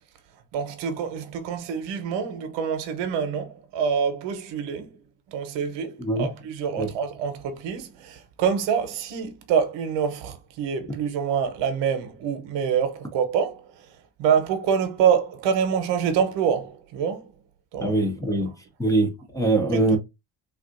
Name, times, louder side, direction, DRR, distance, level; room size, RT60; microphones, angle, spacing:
voice 1, 0.5-5.0 5.3-17.3 17.7-18.0 18.4-18.5 19.7-20.0, right 7 dB, 80° right, 0.8 m, -26 dB
voice 2, 17.8-18.5 18.8-20.0, right 2 dB, 10° left, 0.5 m, -23 dB
3.4 x 2.5 x 2.5 m
cardioid pair, 120°, 43 cm